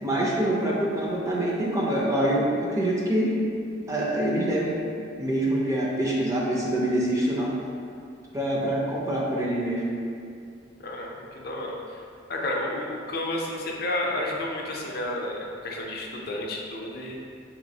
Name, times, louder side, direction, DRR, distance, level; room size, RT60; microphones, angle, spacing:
voice 1, 0.0-3.4 3.9-4.8 5.2-7.5 8.3-9.8, right 1 dB, 15° right, -4 dB, 0.4 m, -25 dB
voice 2, 10.8-12.0 12.3-17.2, left 1 dB, 55° left, -1 dB, 0.4 m, -31 dB
3.8 x 3.0 x 2.7 m, 2.4 s
head